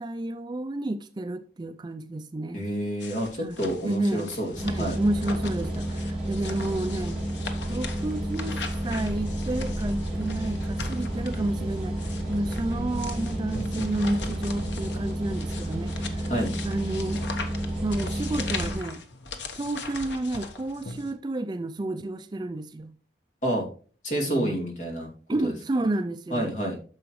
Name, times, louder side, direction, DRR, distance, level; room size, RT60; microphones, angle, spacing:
voice 1, 0.0-2.6 3.4-4.3 4.6-7.2 7.7-11.9 12.3-16.3 16.6-17.3 17.8-19.0 19.6-22.9 24.3-24.6 25.3-26.5, right 2 dB, 25° right, 0.4 m, -31 dB
voice 2, 2.5-5.0 16.3-16.5 23.4-23.7 24.0-25.1 25.4-25.5 26.3-26.8, right 1 dB, 45° left, 2.5 m, -28 dB
sound 1, 3.0-21.1, left 4 dB, 85° left, 1.1 m, -40 dB
sound 2, 4.6-18.7, right 1 dB, 5° right, 3.1 m, -31 dB
9.7 x 6.9 x 3.1 m
head